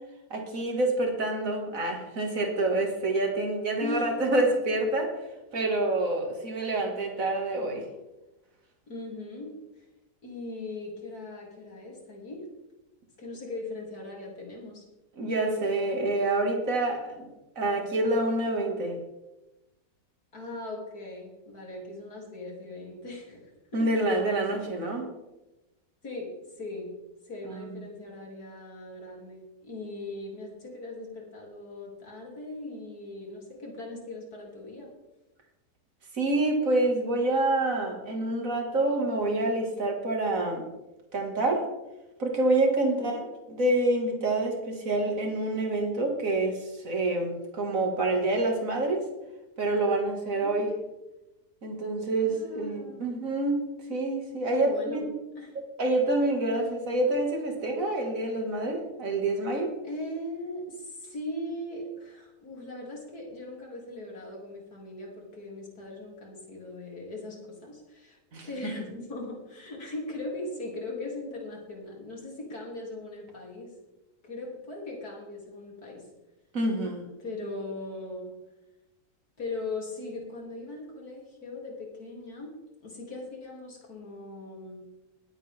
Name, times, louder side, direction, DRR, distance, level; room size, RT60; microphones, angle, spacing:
voice 1, 0.3-5.1 5.5-7.9 15.2-17.3 17.6-19.0 23.7-25.1 27.4-27.8 36.1-40.7 41.1-41.7 42.2-43.2 43.5-49.1 49.6-50.7 51.6-53.6 53.9-55.0 55.8-59.7 68.3-68.5 76.5-77.1, right 2 dB, 60° right, 2 dB, 2.6 m, -27 dB
voice 2, 8.9-9.9 10.2-12.5 13.2-14.8 20.3-23.9 26.0-26.3 26.6-26.9 27.2-34.9 38.4-38.5 42.9-43.2 50.3-50.6 52.2-53.2 54.5-55.0 55.4-55.6 59.8-68.2 68.5-73.7 74.2-76.1 77.2-78.3 79.4-82.5 82.8-84.9, left 2 dB, 75° left, -2 dB, 3.6 m, -39 dB
20.5 x 8.3 x 3.6 m, 0.99 s
omnidirectional pair, 1.6 m